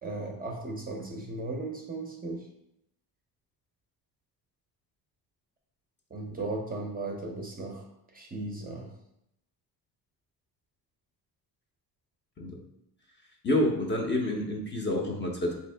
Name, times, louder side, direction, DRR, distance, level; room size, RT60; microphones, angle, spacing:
voice 1, 0.0-2.5 6.1-7.9 8.1-8.9, right 2 dB, 25° right, 0 dB, 0.5 m, -36 dB
voice 2, 13.4-15.6, left 1 dB, 30° left, 0 dB, 0.6 m, -28 dB
3.5 x 2.8 x 3.3 m, 0.79 s
cardioid pair, 130°, 39 cm